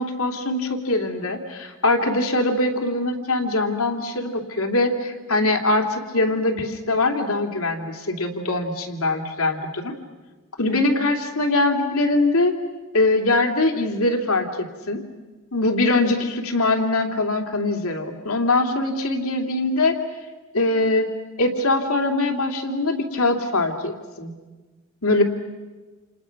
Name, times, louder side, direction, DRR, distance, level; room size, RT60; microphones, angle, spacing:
voice 1, 0.0-9.9 10.6-12.5 12.9-15.0 15.5-20.0 20.5-21.1 21.4-24.3 25.0-25.2, left 2 dB, 75° left, 4 dB, 2.8 m, -22 dB
28.5 x 28.5 x 5.9 m, 1.3 s
head